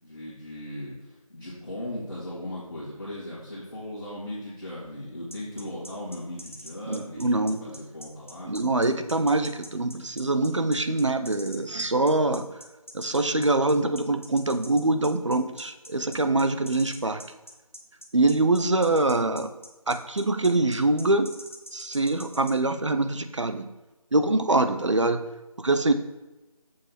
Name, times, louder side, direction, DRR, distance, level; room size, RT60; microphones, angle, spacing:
voice 1, 0.0-8.5 24.7-24.8, left 1 dB, 40° left, -10 dB, 2.5 m, -38 dB
sound 1, 5.3-22.5, equal, 20° left, 0.6 m, -44 dB
voice 2, 6.9-7.6 8.4-12.5 12.9-17.2 18.1-19.5 19.9-21.3 21.7-23.7 24.1-25.2 25.6-25.9, right 2 dB, 55° right, 9 dB, 0.8 m, -24 dB
6.9 x 6.8 x 4.3 m, 1.1 s
figure-of-eight pair, 170°, 19 cm